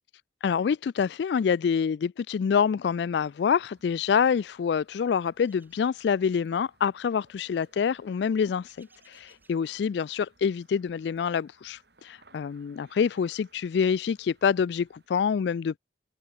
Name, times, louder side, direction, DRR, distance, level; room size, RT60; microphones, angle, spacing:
voice 1, 0.4-15.8, left 6 dB, 70° left, 0.3 m, -26 dB
sound 1, 3.1-15.1, right 3 dB, 65° right, 6.8 m, -64 dB
sound 2, 5.4-6.4 8.7-9.6, right 3 dB, 10° right, 5.8 m, -63 dB
open air
head